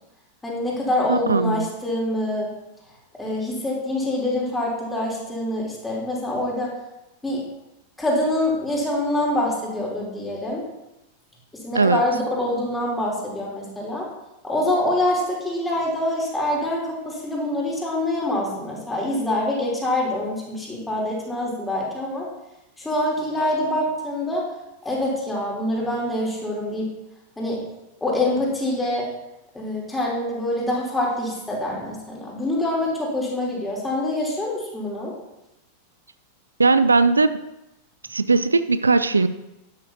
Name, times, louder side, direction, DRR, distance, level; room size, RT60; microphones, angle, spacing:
voice 1, 0.4-2.5 3.2-6.7 7.2-7.4 8.0-10.6 11.6-14.1 14.4-22.3 22.8-24.4 24.8-26.9 27.4-27.6 28.0-29.1 29.5-35.1, left 1 dB, 10° left, -4 dB, 3.4 m, -25 dB
voice 2, 1.1-1.7 11.7-12.0 36.6-37.4 38.1-39.3, right 3 dB, 75° right, 13 dB, 0.4 m, -18 dB
11.5 x 11.0 x 2.8 m, 0.93 s
figure-of-eight pair, 90°, 0 cm